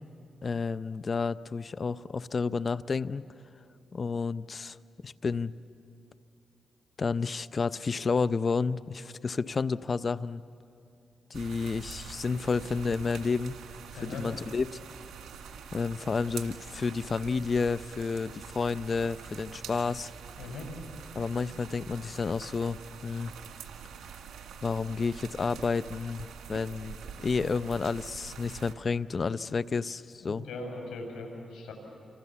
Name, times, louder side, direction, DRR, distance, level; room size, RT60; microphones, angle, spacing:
voice 1, 0.4-3.2 3.9-4.8 5.0-5.5 7.0-10.4 11.3-13.6 14.0-14.7 15.7-20.1 21.1-22.8 23.0-23.3 24.6-30.4, left 4 dB, 45° left, 15 dB, 0.7 m, -30 dB
sound 1, 11.3-28.7, right 7 dB, 85° right, 1.9 m, -45 dB
voice 2, 20.4-20.7 30.2-31.7, left 2 dB, 85° left, 2 dB, 6.1 m, -39 dB
29.0 x 26.0 x 7.1 m, 2.6 s
cardioid pair, 65°, 0 cm